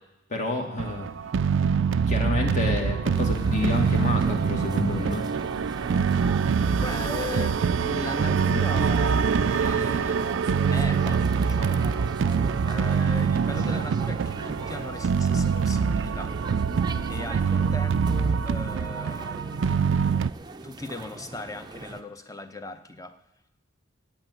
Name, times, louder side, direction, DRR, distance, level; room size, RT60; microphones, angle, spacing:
voice 1, 0.3-1.1 2.1-5.3, left 2 dB, 40° left, 2 dB, 1.6 m, -28 dB
sound 1, 0.8-20.3, right 6 dB, 70° right, 0.4 m, -25 dB
sound 2, 3.1-22.0, right 2 dB, 20° right, 0.6 m, -39 dB
voice 2, 6.8-10.3 10.7-11.8 12.6-16.4 17.1-19.8 20.6-23.2, left 2 dB, 15° left, 9 dB, 0.8 m, -38 dB
8.9 x 8.9 x 9.1 m, 0.86 s
head